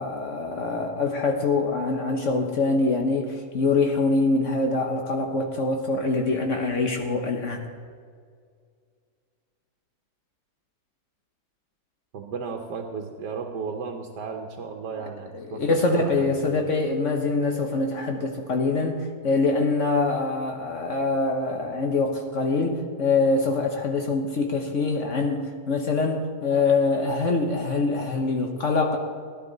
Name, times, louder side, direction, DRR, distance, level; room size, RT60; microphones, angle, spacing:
voice 1, 0.0-7.7 15.3-29.0, left 3 dB, 55° left, 3 dB, 1.2 m, -24 dB
voice 2, 12.1-15.6 15.9-16.6, right 5 dB, 90° right, 2 dB, 1.5 m, -34 dB
16.5 x 11.0 x 4.0 m, 2.1 s
omnidirectional pair, 1.7 m